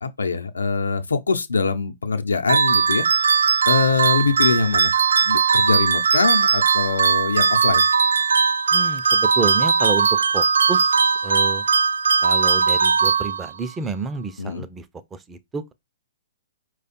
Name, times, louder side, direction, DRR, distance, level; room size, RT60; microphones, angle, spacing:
voice 1, 0.0-4.9 5.2-7.9 14.4-14.6, left 4 dB, 85° left, 0.8 m, -23 dB
sound 1, 2.5-13.7, right 6 dB, 75° right, 0.3 m, -19 dB
voice 2, 8.7-10.1 10.3-11.0 11.2-11.6 12.2-14.8 15.1-15.7, right 4 dB, 15° right, 0.6 m, -29 dB
4.9 x 2.4 x 4.2 m
figure-of-eight pair, 120°, 0 cm